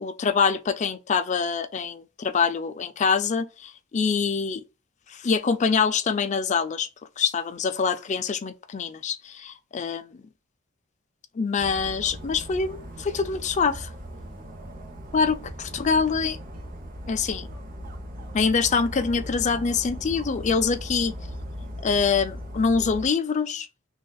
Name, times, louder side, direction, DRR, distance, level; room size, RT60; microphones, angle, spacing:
voice 1, 0.0-4.6 5.1-6.9 7.2-10.2 11.3-13.9 15.1-15.4 15.8-16.4 17.1-17.5 18.3-21.1 21.8-23.7, left 5 dB, 35° left, 0.4 m, -25 dB
Dog, 11.6-23.1, equal, 45° right, 0.8 m, -38 dB
6.2 x 2.4 x 2.3 m
head